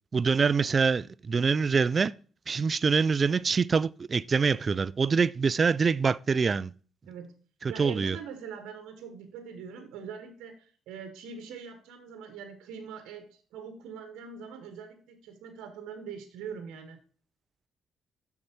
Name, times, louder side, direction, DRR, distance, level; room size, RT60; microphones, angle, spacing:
voice 1, 0.1-2.1 2.5-6.7 7.6-8.2, right 5 dB, 40° right, 0.3 m, -25 dB
voice 2, 7.7-17.0, right 6 dB, 90° right, 1.2 m, -43 dB
7.2 x 6.7 x 4.5 m
cardioid pair, 90°, 0 cm